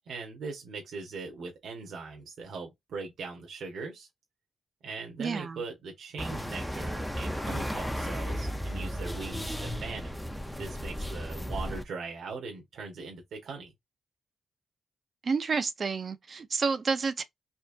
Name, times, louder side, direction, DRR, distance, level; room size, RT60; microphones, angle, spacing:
voice 1, 0.1-4.1 4.8-10.1 10.5-13.7, right 4 dB, 75° right, 1.4 m, -40 dB
voice 2, 5.2-5.6 15.2-17.2, right 5 dB, 40° right, 0.6 m, -29 dB
sound 1, 6.2-11.8, equal, ahead, 0.6 m, -34 dB
4.4 x 2.8 x 2.7 m
wide cardioid pair, 160°, 0 cm